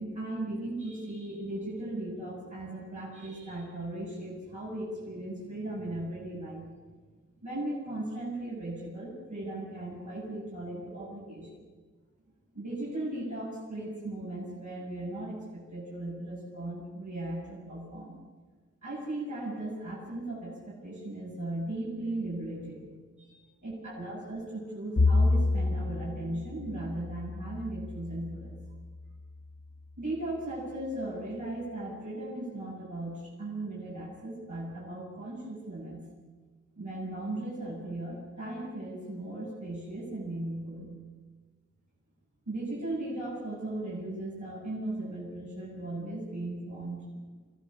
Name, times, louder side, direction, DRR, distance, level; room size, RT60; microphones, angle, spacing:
voice 1, 0.0-6.7 7.4-11.5 12.5-18.2 18.8-28.6 30.0-36.1 36.8-40.9 42.5-47.2, right 1 dB, 85° right, -8 dB, 7.4 m, -37 dB
Bowed string instrument, 25.0-29.4, left 2 dB, 50° left, 1.1 m, -29 dB
24.5 x 15.0 x 7.1 m, 1.4 s
wide cardioid pair, 55°, 29 cm